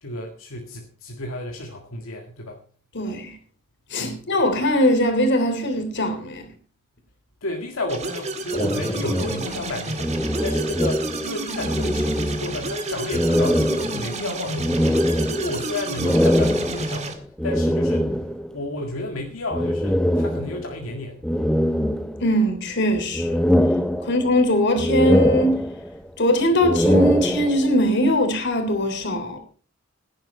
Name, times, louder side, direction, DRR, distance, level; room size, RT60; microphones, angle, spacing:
voice 1, 0.0-2.6 4.0-4.3 7.4-15.0 15.3-18.2 18.5-21.2, left 2 dB, 80° left, 1.9 m, -32 dB
voice 2, 2.9-3.4 3.9-6.4 22.2-23.4 24.0-25.7 26.2-29.4, equal, 60° left, 3.4 m, -21 dB
sound 1, 7.9-17.1, right 2 dB, 35° right, 2.0 m, -31 dB
sound 2, 8.5-11.3 11.6-12.7 13.1-18.5 19.5-20.8 21.2-22.5 22.9-24.4 24.8-26.1 26.5-27.8, equal, 5° left, 0.6 m, -23 dB
16.5 x 10.5 x 4.3 m
head